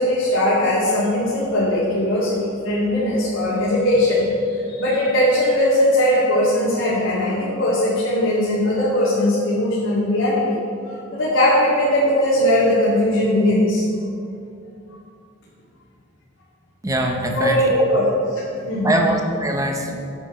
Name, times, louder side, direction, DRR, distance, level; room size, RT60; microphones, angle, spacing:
voice 1, 0.0-4.3 4.7-10.4 10.9-13.8 17.3-18.0 18.7-18.9, left 1 dB, 90° left, -9 dB, 2.1 m, -19 dB
voice 2, 16.8-17.9 18.8-20.1, right 1 dB, 15° right, 2 dB, 0.8 m, -22 dB
8.1 x 7.7 x 5.2 m, 2.6 s
head